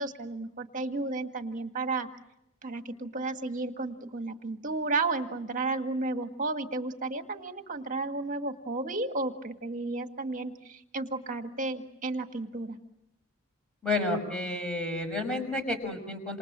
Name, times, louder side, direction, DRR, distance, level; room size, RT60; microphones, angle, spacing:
voice 1, 0.0-2.1 2.6-12.8, right 3 dB, 40° right, 6 dB, 1.8 m, -33 dB
voice 2, 13.8-16.4, left 2 dB, 5° left, 4 dB, 6.0 m, -31 dB
28.0 x 27.0 x 7.5 m, 0.83 s
head